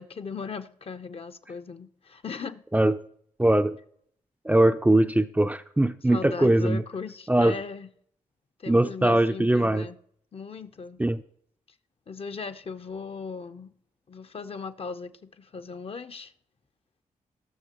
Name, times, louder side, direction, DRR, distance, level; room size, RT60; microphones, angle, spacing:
voice 1, 0.0-2.6 6.1-7.9 8.6-10.0 10.3-11.0 12.1-13.7 14.1-16.3, left 5 dB, 45° left, 0.7 m, -38 dB
voice 2, 3.4-3.8 4.5-6.8 7.3-7.6 8.7-9.9 11.0-11.2, right 1 dB, 10° right, 0.4 m, -21 dB
19.0 x 6.4 x 2.9 m
cardioid pair, 65°, 14 cm